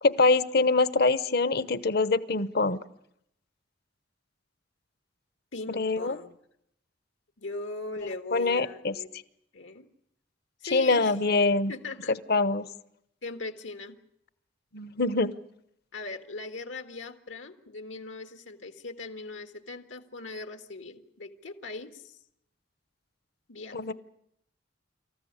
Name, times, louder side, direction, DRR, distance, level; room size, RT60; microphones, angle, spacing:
voice 1, 0.0-2.8 5.7-6.2 8.3-9.0 10.7-11.7 12.1-12.7 14.7-15.3 23.7-23.9, left 3 dB, 55° left, 15 dB, 0.9 m, -24 dB
voice 2, 5.5-6.3 7.4-9.1 9.5-9.9 10.6-11.1 11.7-12.2 13.2-14.0 15.9-22.2 23.5-23.9, left 3 dB, 85° left, 7 dB, 1.8 m, -39 dB
26.5 x 14.5 x 9.7 m, 0.78 s
head